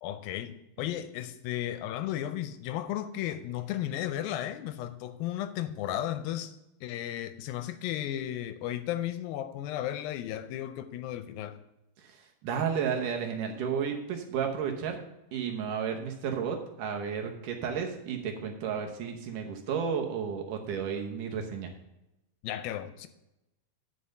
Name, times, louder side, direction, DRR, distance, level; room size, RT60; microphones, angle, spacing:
voice 1, 0.0-6.5 6.8-11.6 22.4-23.1, left 12 dB, 80° left, 2.3 m, -34 dB
voice 2, 12.0-15.0 15.3-21.7, right 7 dB, 70° right, 2.3 m, -32 dB
10.0 x 5.3 x 6.4 m
omnidirectional pair, 4.4 m